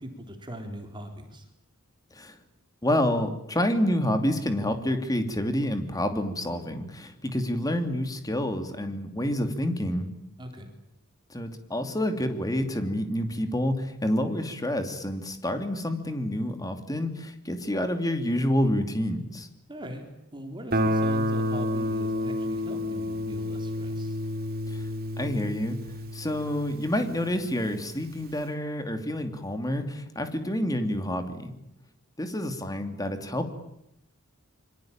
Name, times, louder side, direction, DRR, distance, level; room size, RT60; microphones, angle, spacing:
voice 1, 0.0-1.5 10.4-10.7 19.7-24.2, equal, 20° right, 4 dB, 3.9 m, -40 dB
voice 2, 2.8-10.1 11.3-19.5 24.7-24.8 25.2-25.8 26.1-31.5 32.2-33.5, left 1 dB, 15° left, 7 dB, 2.8 m, -28 dB
Guitar, 20.7-27.4, equal, 45° right, 2.7 m, -30 dB
26.5 x 25.0 x 9.0 m, 0.78 s
head